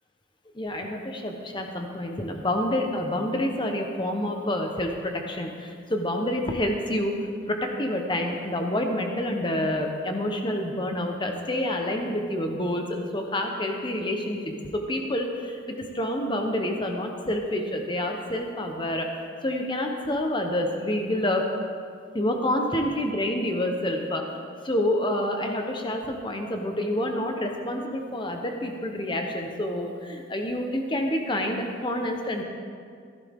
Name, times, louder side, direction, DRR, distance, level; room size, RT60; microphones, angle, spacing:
voice 1, 0.5-19.1 19.4-21.4 22.1-24.2 24.6-32.4, left 1 dB, 25° left, 3 dB, 1.1 m, -28 dB
15.5 x 12.0 x 3.7 m, 2.2 s
head